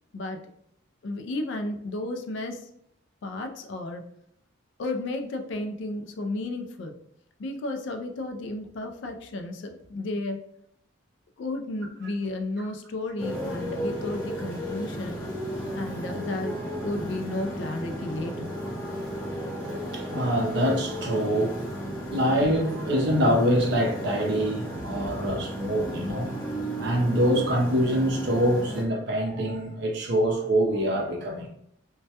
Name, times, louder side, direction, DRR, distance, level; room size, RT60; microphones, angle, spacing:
voice 1, 1.0-2.6 3.2-4.0 4.8-6.9 7.4-10.4 11.4-15.2 15.7-16.6 16.8-18.5, left 2 dB, 60° left, 0.3 m, -33 dB
Motorcycle, 13.2-28.8, equal, 15° left, 0.7 m, -34 dB
voice 2, 18.9-26.4 26.8-31.5, equal, 55° right, 0.5 m, -25 dB
2.2 x 2.1 x 2.7 m
head